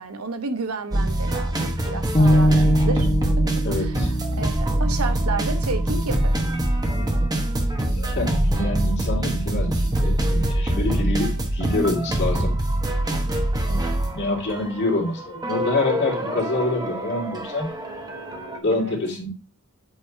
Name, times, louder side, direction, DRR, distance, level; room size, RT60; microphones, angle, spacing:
voice 1, 0.0-6.4 13.7-14.1 18.8-19.0, right 3 dB, 80° right, 1.0 m, -32 dB
sound 1, 0.9-18.6, right 1 dB, 20° right, 1.0 m, -24 dB
sound 2, 2.1-6.3, equal, 25° left, 1.4 m, -23 dB
voice 2, 3.6-4.1 8.0-12.5 14.1-17.7 18.6-19.3, left 2 dB, 55° left, 2.5 m, -26 dB
7.9 x 3.3 x 4.5 m
head